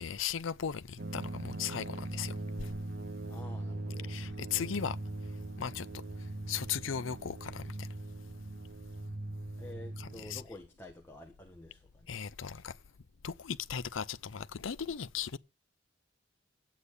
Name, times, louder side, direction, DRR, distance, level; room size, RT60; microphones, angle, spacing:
voice 1, 0.0-2.7 4.1-5.0 5.6-5.9 6.5-7.9 10.0-10.4 12.1-12.7 13.2-15.4, left 7 dB, 90° left, 0.6 m, -37 dB
sound 1, 1.0-10.4, right 2 dB, 50° right, 0.8 m, -40 dB
voice 2, 3.3-4.4 9.6-12.8, left 1 dB, 10° left, 1.4 m, -51 dB
11.5 x 8.4 x 6.8 m
head